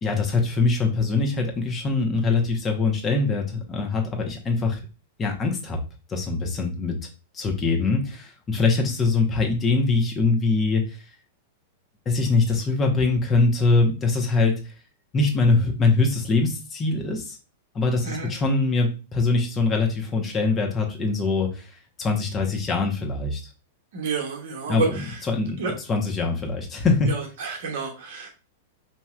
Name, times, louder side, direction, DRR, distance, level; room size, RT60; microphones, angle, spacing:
voice 1, 0.0-4.8 5.2-5.8 6.1-7.0 7.3-11.0 12.0-14.6 15.1-17.4 17.7-21.7 22.0-23.4 24.7-24.9 25.3-25.6 25.9-27.1, left 3 dB, 25° left, 1 dB, 1.1 m, -23 dB
voice 2, 23.9-25.2 25.6-25.7 27.1-28.3, right 4 dB, 60° right, 1 dB, 1.0 m, -29 dB
4.5 x 2.9 x 2.4 m, 0.33 s
figure-of-eight pair, 100°, 0 cm